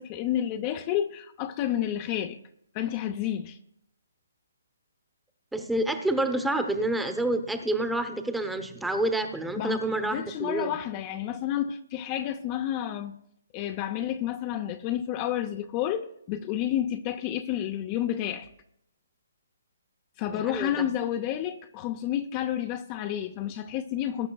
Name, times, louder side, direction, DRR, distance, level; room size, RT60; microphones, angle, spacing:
voice 1, 0.0-2.4 2.7-3.6 9.6-13.1 13.5-18.5 20.2-24.3, left 11 dB, 30° left, 0.6 m, -30 dB
voice 2, 5.5-10.8 20.3-20.9, right 1 dB, 5° right, 0.9 m, -28 dB
20.0 x 10.5 x 2.3 m
hypercardioid pair, 145°, 0 cm